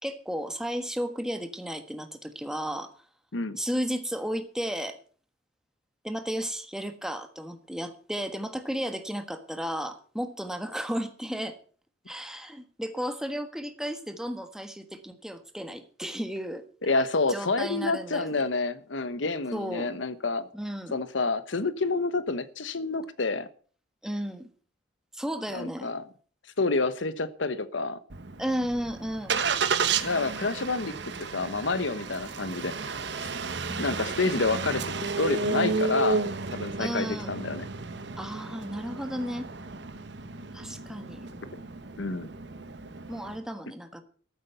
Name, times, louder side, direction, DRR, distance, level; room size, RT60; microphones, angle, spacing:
voice 1, 0.0-2.9 3.6-5.0 6.0-11.6 12.1-16.9 17.3-18.4 19.5-19.9 20.5-21.0 24.0-24.5 25.1-25.9 28.4-29.4 33.7-33.9 36.8-37.3 38.2-39.5 40.5-41.2 43.1-44.0, equal, 5° right, 7 dB, 1.4 m, -33 dB
voice 2, 16.8-20.5 20.9-23.5 25.5-26.0 26.6-28.0 30.0-32.9 33.8-36.2 36.5-37.7 42.0-42.3, left 3 dB, 90° left, 14 dB, 1.1 m, -28 dB
Engine starting, 28.1-43.4, right 4 dB, 65° right, 1.2 m, -32 dB
14.0 x 8.2 x 6.8 m, 0.43 s
head